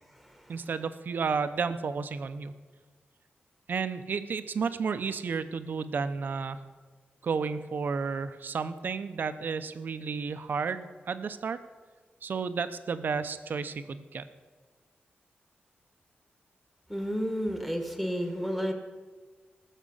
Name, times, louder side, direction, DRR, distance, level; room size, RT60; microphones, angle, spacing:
voice 1, 0.5-2.5 3.7-6.6 7.2-11.6 12.2-14.3, right 5 dB, 55° right, 11 dB, 0.7 m, -32 dB
voice 2, 16.9-18.7, equal, 5° left, 5 dB, 1.5 m, -31 dB
19.0 x 7.4 x 5.6 m, 1.4 s
wide cardioid pair, 150°, 4 cm